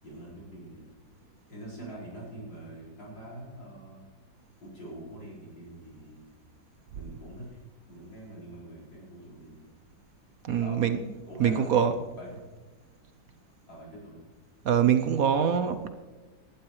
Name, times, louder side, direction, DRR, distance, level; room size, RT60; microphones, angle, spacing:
voice 1, 0.0-0.9 1.5-4.0 4.6-6.2 6.9-7.6 7.9-9.7 10.6-10.8 11.3-11.9 12.1-12.4 13.7-14.2, right 1 dB, 85° left, -5 dB, 5.9 m, -44 dB
voice 2, 10.4-11.0 11.4-11.9 14.6-15.9, right 8 dB, 65° right, 9 dB, 1.0 m, -24 dB
18.5 x 11.5 x 3.2 m, 1.3 s
omnidirectional pair, 2.0 m